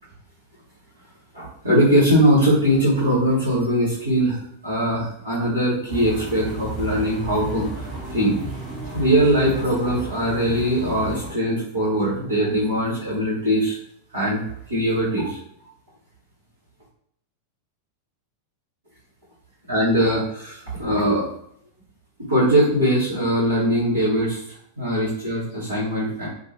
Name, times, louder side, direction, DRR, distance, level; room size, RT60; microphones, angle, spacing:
voice 1, 1.3-8.3 8.9-13.8 14.1-14.4 14.7-15.4 19.7-21.3 22.3-24.4 24.8-26.3, equal, 80° right, -13 dB, 1.3 m, -21 dB
sound 1, 5.9-11.3, right 2 dB, 45° right, 1.3 m, -33 dB
2.8 x 2.6 x 2.6 m, 0.72 s
figure-of-eight pair, 90°, 0 cm